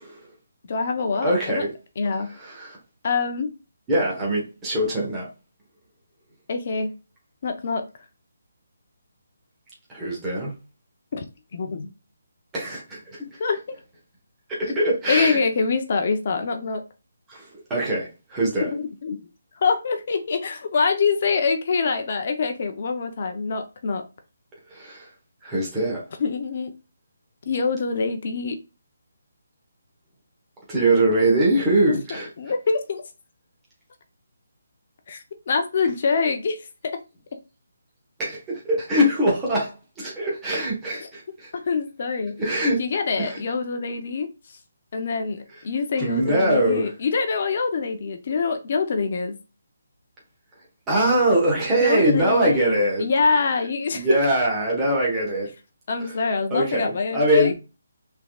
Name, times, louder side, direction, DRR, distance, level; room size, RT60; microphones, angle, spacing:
voice 1, 0.7-1.6 2.0-2.4 3.0-3.5 6.5-7.0 7.4-7.9 11.1-11.2 11.5-11.9 13.4-13.8 15.1-16.8 18.6-19.2 19.6-24.0 26.2-26.7 27.5-28.6 31.9-32.0 32.4-33.0 35.1-37.0 41.0-41.1 41.5-42.4 42.8-44.3 44.9-49.4 51.8-54.2 55.9-57.5, left 4 dB, 35° left, 0.6 m, -25 dB
voice 2, 1.2-1.7 2.4-2.8 3.9-5.3 9.9-10.6 12.5-13.4 14.5-15.4 17.3-18.7 24.7-25.1 25.4-26.0 30.7-32.3 38.2-41.5 42.4-42.8 43.2-43.4 46.0-46.9 50.9-53.1 53.9-55.5 56.0-56.1 56.5-57.5, right 1 dB, 10° right, 1.1 m, -22 dB
5.6 x 3.6 x 2.3 m
hypercardioid pair, 175°, 0 cm